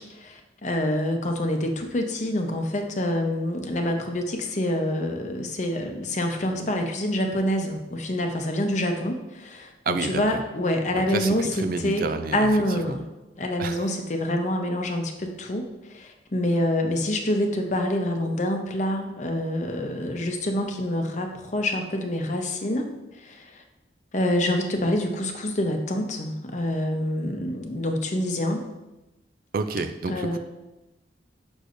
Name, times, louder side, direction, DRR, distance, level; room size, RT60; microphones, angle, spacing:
voice 1, 0.0-13.1 13.4-15.7 15.9-22.9 23.2-23.6 24.1-28.7 30.1-30.4, left 1 dB, 40° left, 4 dB, 0.7 m, -26 dB
voice 2, 9.9-10.2 10.9-12.5 12.9-13.0 13.6-13.9 29.5-30.4, right 3 dB, 55° right, 9 dB, 0.4 m, -29 dB
6.6 x 6.1 x 2.6 m, 0.99 s
head